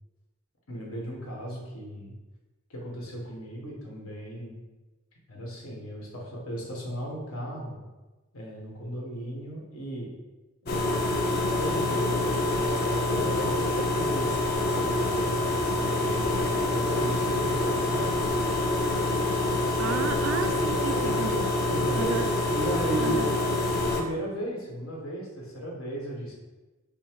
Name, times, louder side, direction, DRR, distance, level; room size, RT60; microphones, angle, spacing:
voice 1, 0.7-2.1 2.7-4.6 5.3-7.8 8.3-10.1 10.6-15.3 15.6-18.2 21.7-22.3 22.5-23.3 23.9-26.3, right 1 dB, 85° left, -2 dB, 1.2 m, -36 dB
sound 1, 10.7-24.0, left 2 dB, 50° left, 0.6 m, -26 dB
voice 2, 19.8-21.5 22.0-22.4 23.0-23.4, right 5 dB, 70° right, 9 dB, 0.4 m, -33 dB
5.4 x 2.0 x 4.5 m, 1.2 s
head